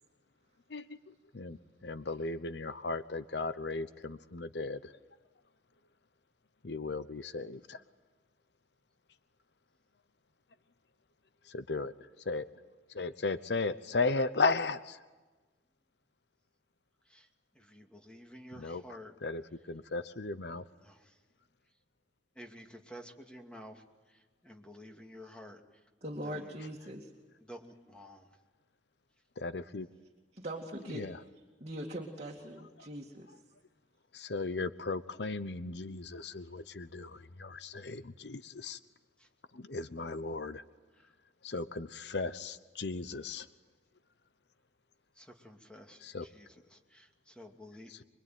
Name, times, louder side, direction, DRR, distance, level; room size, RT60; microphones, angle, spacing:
voice 1, 0.7-5.0 6.6-7.8 11.4-11.9 12.2-12.5 12.9-15.0 18.5-20.6 29.4-29.9 30.9-31.2 32.8-32.9 34.1-38.8 39.5-40.6 41.4-43.5 46.0-46.3 47.9-48.0, left 3 dB, 65° left, 13 dB, 0.9 m, -36 dB
voice 2, 17.5-19.1 20.8-21.1 22.4-23.8 24.4-25.6 26.3-26.5 27.4-28.3 39.2-39.3 45.2-46.0 46.3-47.9, equal, 5° left, 2 dB, 2.5 m, -51 dB
voice 3, 26.0-27.1 30.3-31.0 31.6-33.3, right 1 dB, 35° right, -1 dB, 2.3 m, -41 dB
25.0 x 23.5 x 9.3 m, 1.3 s
head